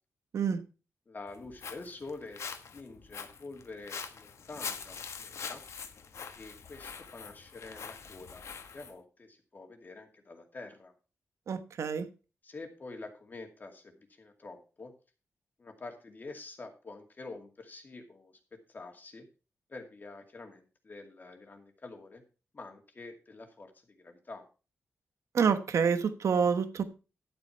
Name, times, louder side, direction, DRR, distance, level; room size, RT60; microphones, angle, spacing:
voice 1, 1.1-5.6 6.3-8.4 8.7-10.9 12.4-14.9 15.6-18.3 18.7-19.3 19.7-22.2 22.5-24.4, left 3 dB, 35° left, 2.3 m, -47 dB
Walk footsteps, 1.3-8.9, left 6 dB, 65° left, 1.3 m, -43 dB
voice 2, 11.5-12.1 25.3-26.8, right 6 dB, 75° right, 1.2 m, -27 dB
11.5 x 8.2 x 4.6 m
wide cardioid pair, 110°, 5 cm